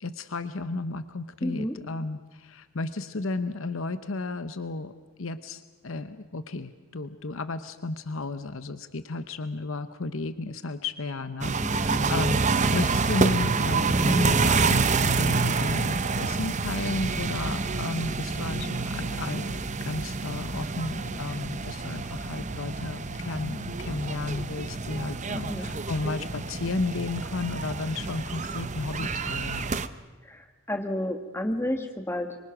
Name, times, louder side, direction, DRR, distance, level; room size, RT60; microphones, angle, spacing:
voice 1, 0.0-4.9 5.2-29.7, left 3 dB, 60° left, 11 dB, 0.9 m, -33 dB
voice 2, 1.4-1.8 11.6-12.0 21.3-21.4 25.3-25.7 30.2-32.4, left 1 dB, 10° left, 4 dB, 2.0 m, -31 dB
sound 1, 11.4-29.9, right 4 dB, 35° right, 0.7 m, -28 dB
24.5 x 24.5 x 6.1 m, 1.2 s
head